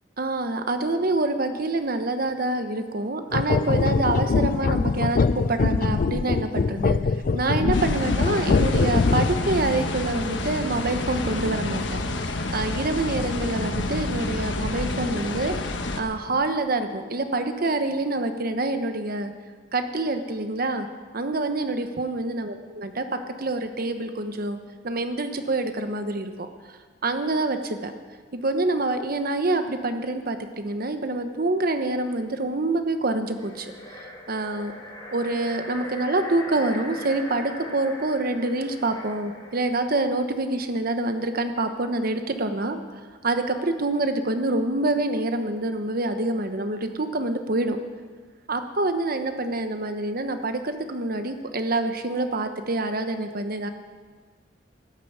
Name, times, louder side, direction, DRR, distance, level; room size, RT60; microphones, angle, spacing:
voice 1, 0.2-7.0 7.3-15.6 15.9-19.3 19.7-20.9 21.1-24.6 24.8-26.5 27.0-27.9 28.3-33.7 34.3-34.7 35.1-42.8 43.2-47.8 48.5-53.7, right 2 dB, 55° right, 7 dB, 1.1 m, -26 dB
sound 1, 3.3-9.5, left 4 dB, 50° left, 0.4 m, -23 dB
sound 2, 7.7-16.0, left 2 dB, 85° left, 1.2 m, -28 dB
sound 3, 33.2-39.7, left 1 dB, 25° left, 4.2 m, -40 dB
13.0 x 10.5 x 8.2 m, 1.5 s
head